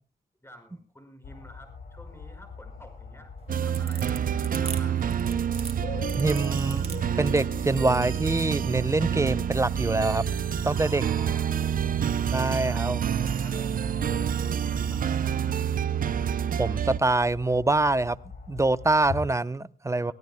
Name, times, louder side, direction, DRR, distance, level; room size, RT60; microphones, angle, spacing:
voice 1, 0.4-5.1 10.7-15.6 20.0-20.1, left 1 dB, 15° left, 5 dB, 5.7 m, -51 dB
sound 1, 1.2-19.3, left 4 dB, 70° left, 1.9 m, -43 dB
sound 2, 3.4-8.5, right 4 dB, 40° right, 1.9 m, -41 dB
sound 3, 3.5-17.0, right 8 dB, 65° right, 0.6 m, -28 dB
voice 2, 6.1-10.2 10.6-11.0 12.3-13.0 16.6-18.2 18.5-20.1, right 2 dB, 20° right, 15 dB, 0.7 m, -25 dB
23.0 x 16.0 x 2.2 m, 0.34 s
cardioid pair, 80°, 15 cm